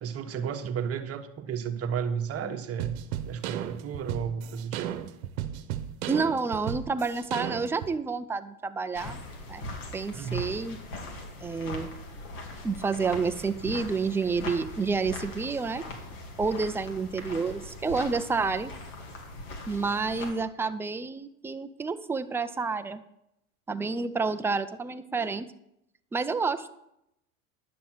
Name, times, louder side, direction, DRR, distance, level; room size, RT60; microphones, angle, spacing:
voice 1, 0.0-3.0 3.2-4.9 10.1-10.5, right 7 dB, 35° right, 6 dB, 1.3 m, -33 dB
sound 1, 2.8-7.9, right 11 dB, 70° right, 1.0 m, -34 dB
voice 2, 6.1-9.2 9.5-9.7 9.9-10.8 11.4-11.9 12.6-15.8 16.4-18.7 19.7-23.0 23.7-25.5 26.1-26.8, right 4 dB, 5° right, 9 dB, 0.3 m, -29 dB
sound 2, 8.9-20.3, left 2 dB, 80° left, 2.8 m, -40 dB
10.5 x 7.0 x 6.0 m, 0.80 s
hypercardioid pair, 105°, 43 cm